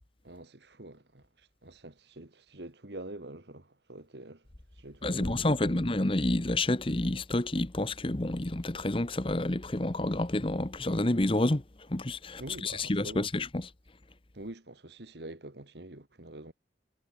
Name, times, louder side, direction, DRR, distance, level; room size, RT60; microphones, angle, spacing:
voice 1, 0.2-4.4 4.8-5.8 12.4-13.3 14.3-16.5, right 1 dB, 65° right, 2.1 m, -46 dB
voice 2, 5.0-11.6 11.9-13.7, left 1 dB, 30° left, 1.1 m, -29 dB
head